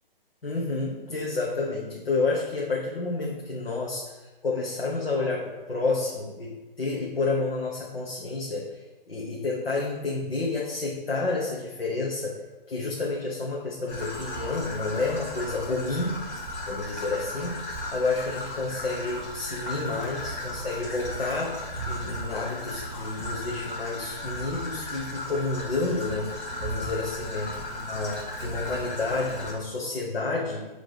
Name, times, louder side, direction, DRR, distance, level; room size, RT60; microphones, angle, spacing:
voice 1, 0.4-8.8 9.1-16.2 16.6-17.6 17.9-26.3 26.6-30.7, left 3 dB, 80° left, -3 dB, 1.4 m, -30 dB
Traffic noise roadway noise / Trickle dribble, 13.9-29.5, left 1 dB, 25° left, 2.4 m, -35 dB
7.8 x 3.7 x 5.2 m, 1.1 s
figure-of-eight pair, 140°, 29 cm